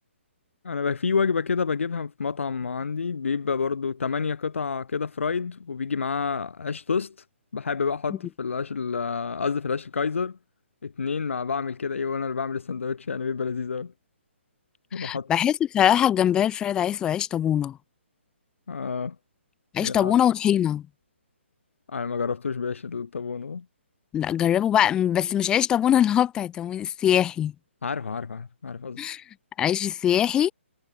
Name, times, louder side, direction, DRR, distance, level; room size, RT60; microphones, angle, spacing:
voice 1, 0.6-7.1 7.5-10.4 10.8-13.9 14.9-15.3 18.7-19.2 19.8-20.1 21.9-23.6 27.8-29.0, left 5 dB, 75° left, 2.5 m, -29 dB
voice 2, 14.9-17.8 19.7-20.8 24.1-27.5 29.0-29.2 29.6-30.5, left 10 dB, 10° left, 0.6 m, -22 dB
hypercardioid pair, 155°, 7 cm